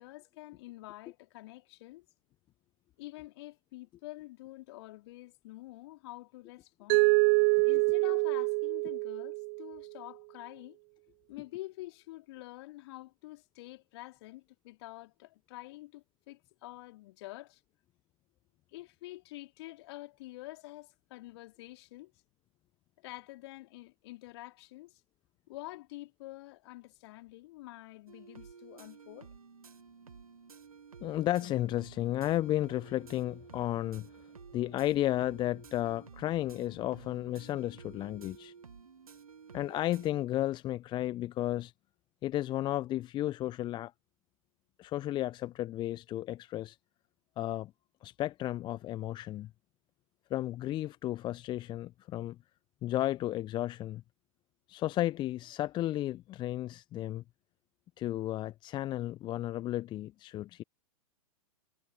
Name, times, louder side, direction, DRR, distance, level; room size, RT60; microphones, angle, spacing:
voice 1, 0.0-2.0 3.0-7.0 7.6-10.8 11.3-17.6 18.7-22.1 23.0-25.0 25.5-29.3, left 18 dB, 45° left, 3.7 m, -47 dB
Mallet percussion, 6.9-9.8, right 39 dB, 35° right, 0.6 m, -26 dB
sound 1, 28.1-40.3, right 6 dB, 75° right, 2.2 m, -53 dB
voice 2, 31.0-34.1 34.5-38.5 39.5-41.7 42.2-43.9 44.8-46.8 47.4-47.7 48.0-49.5 50.3-52.4 52.8-54.0 54.7-57.2 58.0-60.6, left 14 dB, 25° left, 1.0 m, -33 dB
figure-of-eight pair, 105°, 18 cm